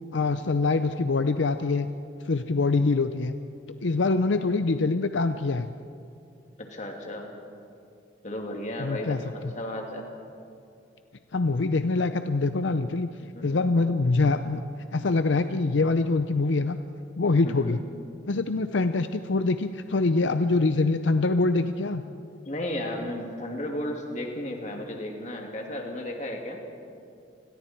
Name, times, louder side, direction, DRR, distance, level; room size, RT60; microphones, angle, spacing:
voice 1, 0.1-1.9 2.3-3.3 3.8-5.7 8.8-9.5 11.3-13.1 13.4-14.6 14.9-16.8 17.2-17.8 18.3-22.0, left 3 dB, 75° left, 10 dB, 0.6 m, -24 dB
voice 2, 6.6-7.3 8.2-10.0 13.2-13.6 17.4-17.8 22.4-26.6, left 1 dB, 40° left, 1 dB, 2.8 m, -34 dB
29.0 x 21.5 x 4.5 m, 2.6 s
head